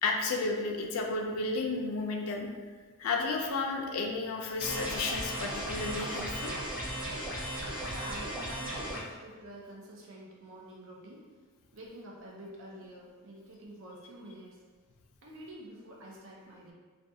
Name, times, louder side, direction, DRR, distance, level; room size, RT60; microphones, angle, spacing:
voice 1, 0.0-2.5 3.0-6.5, left 3 dB, 65° left, 2 dB, 0.4 m, -32 dB
sound 1, 4.6-9.0, equal, 5° right, 0.5 m, -36 dB
voice 2, 7.9-11.2 11.7-14.6 15.2-16.7, right 1 dB, 60° right, -3 dB, 0.6 m, -48 dB
2.4 x 2.3 x 2.6 m, 1.4 s
head